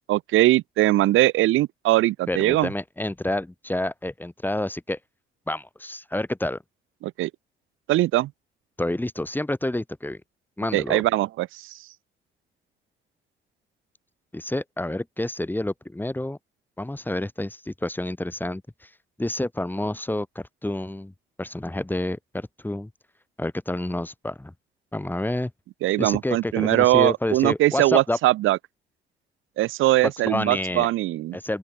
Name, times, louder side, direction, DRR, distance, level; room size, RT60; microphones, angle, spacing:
voice 1, 0.1-2.7 7.0-7.3 7.9-8.3 10.7-11.8 25.8-28.6 29.6-31.4, right 16 dB, 90° right, 1.7 m, -21 dB
voice 2, 2.3-5.0 5.5-6.6 8.8-10.2 10.6-11.1 14.3-16.4 16.8-18.9 19.2-21.1 21.4-22.9 23.4-24.5 24.9-25.5 26.0-28.2 30.0-30.9 31.3-31.6, left 1 dB, 10° left, 7.2 m, -29 dB
open air
cardioid pair, 90°, 20 cm